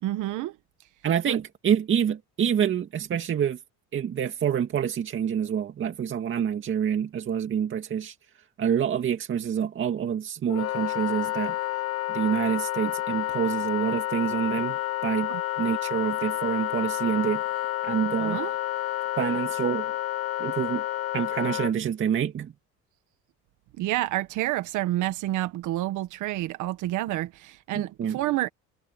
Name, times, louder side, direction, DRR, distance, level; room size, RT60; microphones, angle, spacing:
voice 1, 0.0-0.6 1.3-1.4 15.3-15.4 18.2-18.5 23.8-28.5, right 15 dB, 70° right, 1.5 m, -29 dB
voice 2, 1.0-3.6 3.9-8.1 8.6-11.5 12.1-15.3 15.6-17.4 17.8-18.4 19.2-19.9 20.4-20.8 21.1-22.5 27.7-28.2, right 8 dB, 40° right, 2.2 m, -27 dB
Wind instrument woodwind instrument, 10.5-21.7, left 15 dB, 50° left, 0.9 m, -30 dB
cardioid pair, 130°, 32 cm